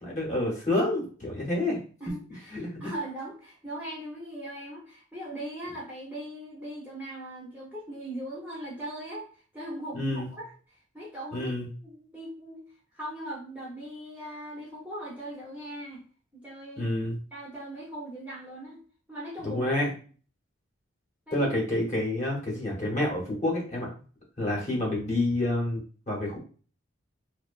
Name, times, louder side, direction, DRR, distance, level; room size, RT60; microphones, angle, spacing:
voice 1, 0.0-1.8 2.5-2.9 9.9-10.3 11.3-11.7 16.8-17.2 19.4-19.9 21.3-23.9 24.4-26.4, left 1 dB, 35° left, -3 dB, 0.8 m, -28 dB
voice 2, 2.0-9.3 9.5-11.5 11.8-12.6 12.9-16.0 16.4-16.9 17.3-18.8 19.1-19.7 21.3-21.5, right 1 dB, 5° right, -6 dB, 0.5 m, -39 dB
2.6 x 2.1 x 2.3 m, 0.40 s
head